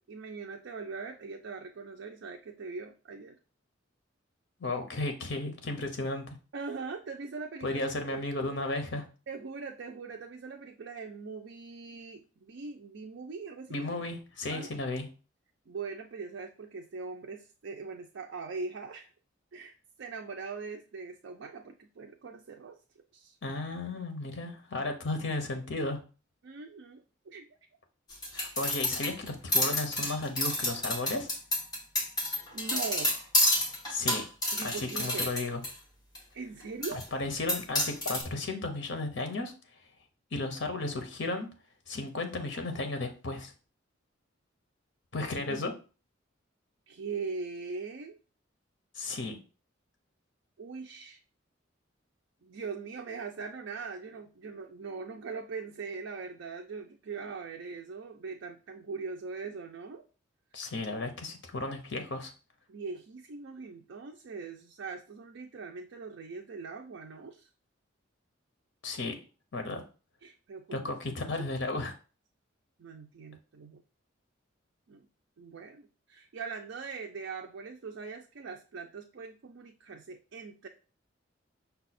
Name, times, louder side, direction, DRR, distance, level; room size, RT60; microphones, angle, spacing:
voice 1, 0.0-3.4 6.5-8.3 9.3-13.9 14.5-14.7 15.7-19.1 19.5-22.8 23.1-23.4 26.4-27.5 32.5-33.2 34.5-35.3 36.3-37.0 45.5-45.6 46.9-48.2 50.6-51.2 52.4-60.0 62.7-67.5 70.2-71.8 72.8-73.8 74.9-75.1 75.4-80.7, right 4 dB, 70° right, 3 dB, 0.4 m, -41 dB
voice 2, 4.6-6.4 7.6-9.0 13.7-15.1 23.4-26.0 28.3-31.3 33.9-34.2 34.6-35.6 36.9-39.5 40.3-41.5 41.9-43.5 45.1-45.7 48.9-49.4 60.5-62.3 68.8-69.1 69.5-69.8 70.7-71.9, left 2 dB, 65° left, 6 dB, 0.8 m, -34 dB
sound 1, 28.1-35.7 36.1-36.2 36.8-37.0 37.5-38.2, left 1 dB, 20° left, 1.1 m, -29 dB
5.4 x 2.3 x 4.2 m, 0.36 s
head